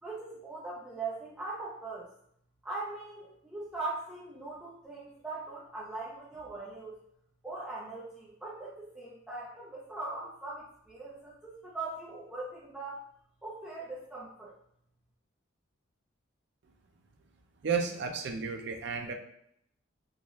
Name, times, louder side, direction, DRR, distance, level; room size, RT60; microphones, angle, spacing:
voice 1, 0.0-2.1 2.6-7.0 7.4-13.0 13.4-14.5, right 3 dB, 5° right, -8 dB, 0.6 m, -40 dB
voice 2, 17.6-19.1, right 5 dB, 60° right, 4 dB, 0.5 m, -32 dB
3.9 x 2.4 x 3.0 m, 0.72 s
head